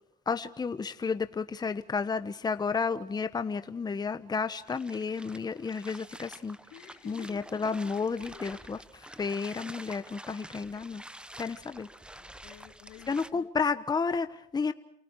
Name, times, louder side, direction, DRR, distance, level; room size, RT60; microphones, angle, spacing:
voice 1, 0.3-6.6 7.0-8.8 9.2-11.0 11.4-11.9 13.1-14.7, left 5 dB, 25° left, 11 dB, 1.2 m, -31 dB
sound 1, 4.6-13.3, right 1 dB, 5° right, 1.2 m, -48 dB
voice 2, 6.7-7.5 8.3-8.7 12.1-13.1, left 11 dB, 90° left, 5 dB, 3.4 m, -50 dB
29.5 x 28.5 x 4.8 m, 0.74 s
cardioid pair, 110°, 17 cm